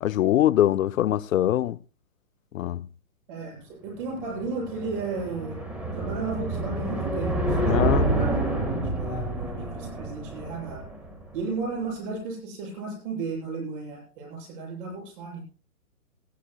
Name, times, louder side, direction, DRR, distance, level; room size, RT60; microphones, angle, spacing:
voice 1, 0.0-1.8 2.5-2.8 7.7-8.1, left 12 dB, 65° left, 0.5 m, -23 dB
voice 2, 3.3-5.6 5.9-10.8 11.3-15.4, right 4 dB, 35° right, 7.8 m, -34 dB
sound 1, 4.0-11.4, right 1 dB, 5° right, 0.7 m, -28 dB
20.0 x 14.5 x 2.3 m
hypercardioid pair, 160°, 43 cm